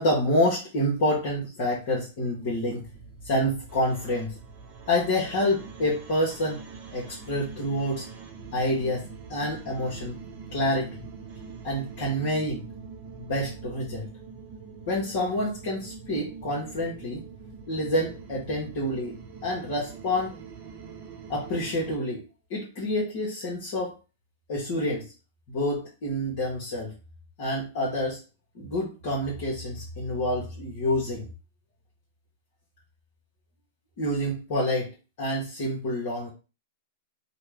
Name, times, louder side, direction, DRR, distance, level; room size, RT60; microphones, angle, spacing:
voice 1, 0.0-2.8 3.2-4.3 4.9-6.6 6.9-8.0 8.5-10.2 10.5-11.0 11.6-12.6 13.2-14.1 14.9-17.2 17.7-19.2 19.4-20.4 21.3-22.2 22.5-23.9 24.5-25.1 25.5-26.9 27.4-28.2 28.5-31.3 34.0-36.3, left 1 dB, 55° left, -5 dB, 1.2 m, -28 dB
sound 1, 2.8-22.0, right 5 dB, 45° right, 0.8 m, -44 dB
2.8 x 2.2 x 3.5 m, 0.32 s
hypercardioid pair, 120°, 0 cm